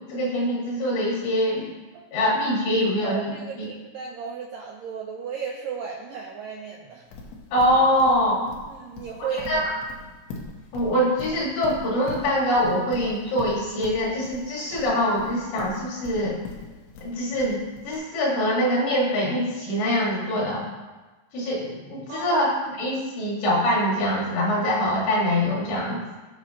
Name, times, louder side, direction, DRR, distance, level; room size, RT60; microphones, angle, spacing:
voice 1, 0.0-1.7 2.1-3.7 7.5-8.4 9.5-9.6 10.7-16.4 17.0-20.7 21.3-22.5 22.8-26.0, equal, 70° left, -4 dB, 4.2 m, -24 dB
voice 2, 3.0-7.1 8.7-9.7 22.1-22.4, right 6 dB, 90° right, -1 dB, 1.9 m, -35 dB
Livestock farm animals working animals, 7.1-17.9, left 3 dB, 85° left, 3.6 m, -40 dB
17.0 x 5.9 x 3.0 m, 1.2 s
omnidirectional pair, 5.2 m